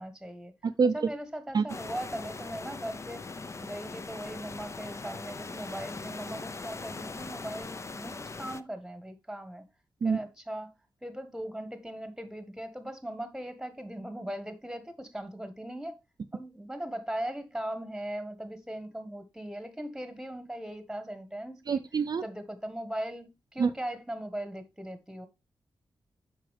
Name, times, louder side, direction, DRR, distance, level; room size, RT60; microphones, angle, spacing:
voice 1, 0.0-0.5 0.9-3.3 3.6-9.7 10.0-10.7 11.0-16.0 16.3-22.0 22.2-25.3, right 1 dB, 5° right, 1.3 m, -39 dB
voice 2, 0.6-0.9 1.5-1.6 10.0-10.2 21.7-22.2 23.6-23.7, right 5 dB, 50° right, 0.4 m, -25 dB
sound 1, 1.7-8.6, left 3 dB, 35° left, 0.5 m, -41 dB
7.7 x 6.1 x 3.3 m
wide cardioid pair, 105°, 9 cm